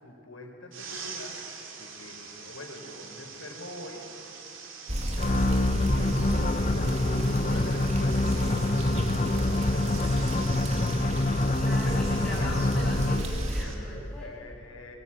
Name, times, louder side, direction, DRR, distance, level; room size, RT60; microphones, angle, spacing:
voice 1, 0.0-1.4 1.8-4.0 5.2-11.2 11.8-12.9 14.2-15.0, left 2 dB, 85° left, 1 dB, 4.5 m, -45 dB
sound 1, 0.7-13.7, right 5 dB, 75° right, 2.8 m, -44 dB
sound 2, 4.9-13.6, equal, 35° right, 2.2 m, -33 dB
sound 3, 5.2-13.4, left 2 dB, 35° left, 0.8 m, -26 dB
voice 2, 11.6-14.3, left 1 dB, 5° left, -6 dB, 7.6 m, -40 dB
22.5 x 18.0 x 9.0 m, 2.5 s
head